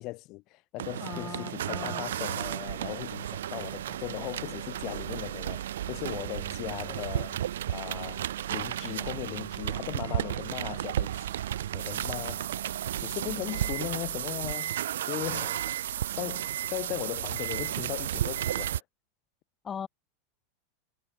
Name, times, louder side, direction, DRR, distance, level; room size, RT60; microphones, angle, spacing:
voice 1, 0.0-11.2 11.7-12.5 13.0-15.6 16.1-18.8, left 20 dB, 45° left, 3.1 m, -38 dB
sound 1, 0.8-18.8, right 11 dB, 90° right, 0.5 m, -33 dB
voice 2, 1.0-2.1 19.6-19.9, left 7 dB, 25° left, 0.7 m, -39 dB
supercardioid pair, 130°, 0 cm